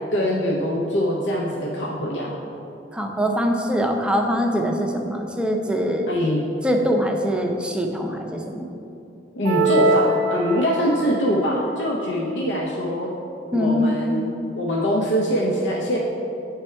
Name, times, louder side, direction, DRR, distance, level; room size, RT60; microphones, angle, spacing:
voice 1, 0.1-2.3 6.1-6.4 9.4-13.1 13.5-14.3 14.5-16.0, equal, 85° left, -3 dB, 0.7 m, -23 dB
voice 2, 2.9-6.1 6.6-8.7 13.5-13.9, equal, 5° right, 2 dB, 0.5 m, -23 dB
sound 1, 9.4-11.1, right 2 dB, 75° right, 0.3 m, -21 dB
8.8 x 3.4 x 4.4 m, 2.8 s
head